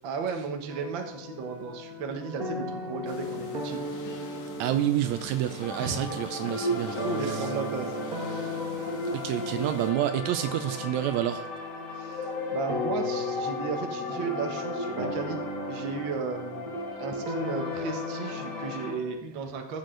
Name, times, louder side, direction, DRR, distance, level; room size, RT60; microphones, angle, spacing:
voice 1, 0.0-3.8 5.8-8.0 12.0-15.4 15.7-16.7 17.0-19.8, right 5 dB, 55° right, 4 dB, 1.6 m, -35 dB
sound 1, 0.7-19.1, left 2 dB, 35° right, 1.8 m, -37 dB
sound 2, 3.1-9.9, left 4 dB, 75° left, 2.5 m, -45 dB
voice 2, 4.6-7.5 9.1-11.4 17.1-17.2, right 12 dB, 80° right, 9 dB, 1.8 m, -29 dB
sound 3, 5.6-18.9, left 1 dB, 45° left, 1.6 m, -35 dB
15.5 x 6.4 x 3.9 m, 0.80 s
omnidirectional pair, 3.3 m